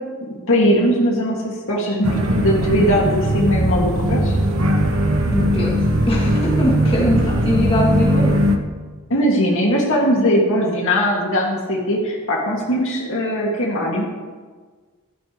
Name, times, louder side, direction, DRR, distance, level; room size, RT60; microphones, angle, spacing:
voice 1, 0.5-4.4 9.1-14.1, equal, 60° left, -2 dB, 2.3 m, -19 dB
sound 1, 2.0-8.6, equal, 70° right, 1.1 m, -19 dB
voice 2, 5.3-8.5, left 1 dB, 25° left, -5 dB, 2.6 m, -22 dB
14.5 x 13.5 x 3.2 m, 1.5 s
head